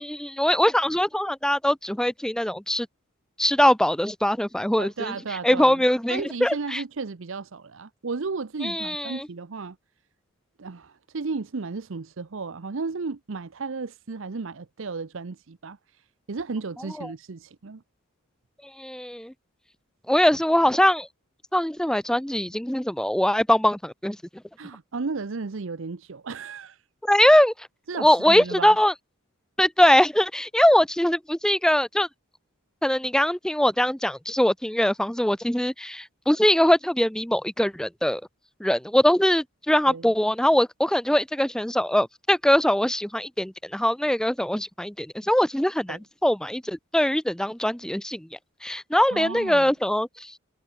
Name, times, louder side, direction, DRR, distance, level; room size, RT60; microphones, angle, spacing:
voice 1, 0.0-2.9 3.4-5.1 5.4-6.8 8.6-9.3 17.0-17.1 18.8-19.3 20.1-21.1 21.5-24.2 27.0-27.5 28.0-28.9 29.6-32.1 32.8-38.2 38.6-48.3 48.6-50.4, left 1 dB, 5° left, 0.6 m, -22 dB
voice 2, 4.8-5.8 6.1-9.8 10.6-17.8 24.6-26.8 27.9-28.8 39.9-40.1 45.9-46.0 49.1-49.7, right 4 dB, 60° right, 0.7 m, -34 dB
head